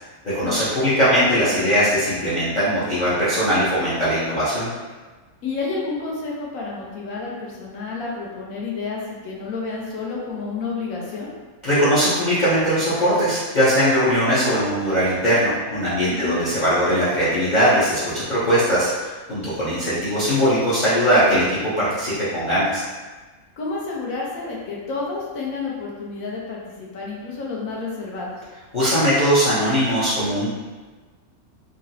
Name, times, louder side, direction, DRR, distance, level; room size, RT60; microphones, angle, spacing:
voice 1, 0.3-4.7 11.6-22.8 28.7-30.5, equal, 45° left, -11 dB, 0.6 m, -20 dB
voice 2, 5.4-11.3 16.1-16.4 23.6-28.4, left 4 dB, 70° left, -3 dB, 1.1 m, -30 dB
3.7 x 2.0 x 2.6 m, 1.3 s
omnidirectional pair, 1.6 m